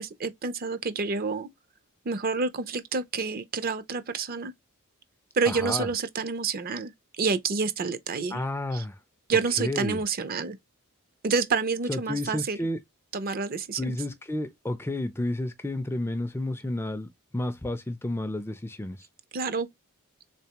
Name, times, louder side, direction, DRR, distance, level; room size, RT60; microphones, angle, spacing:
voice 1, 0.0-1.5 2.1-4.5 5.3-6.9 7.2-8.4 8.7-8.8 9.3-10.6 11.2-12.6 13.1-14.0 19.3-19.7, right 4 dB, 40° right, 0.5 m, -28 dB
voice 2, 5.5-5.9 8.3-9.0 9.3-10.0 11.9-12.8 13.8-19.1, left 1 dB, 10° left, 0.4 m, -31 dB
3.5 x 3.3 x 2.8 m
head